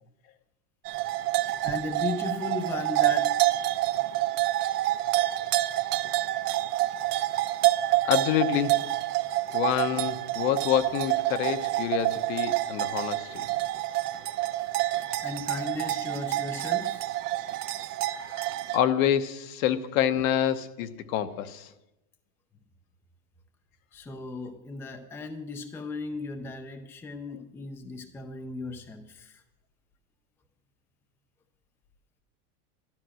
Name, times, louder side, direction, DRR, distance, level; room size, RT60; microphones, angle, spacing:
sound 1, 0.8-18.8, right 15 dB, 80° right, 1.2 m, -28 dB
voice 1, 1.6-3.3 4.7-5.0 15.2-17.0 23.9-29.4, left 3 dB, 5° left, 6 dB, 0.5 m, -36 dB
voice 2, 5.2-5.5 8.0-8.7 9.5-13.4 18.3-21.7, left 10 dB, 60° left, 11 dB, 1.1 m, -27 dB
12.5 x 12.5 x 6.3 m, 0.92 s
supercardioid pair, 155°, 46 cm